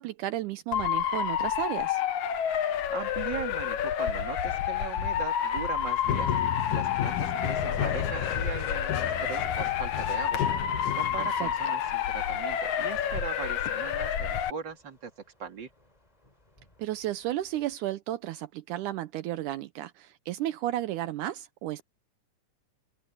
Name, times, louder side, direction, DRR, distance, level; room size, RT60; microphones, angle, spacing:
voice 1, 0.0-2.0 11.4-11.5 16.8-21.8, right 13 dB, 80° right, 2.3 m, -33 dB
Motor vehicle (road) / Siren, 0.7-14.5, left 9 dB, 70° left, 2.8 m, -29 dB
voice 2, 2.9-6.3 6.7-10.4 10.9-15.1 15.4-15.7, right 7 dB, 35° right, 2.9 m, -39 dB
sound 1, 6.0-11.6, left 10 dB, 85° left, 2.6 m, -33 dB
Thunder / Rain, 6.9-17.8, left 2 dB, 10° left, 3.2 m, -52 dB
open air
omnidirectional pair, 3.6 m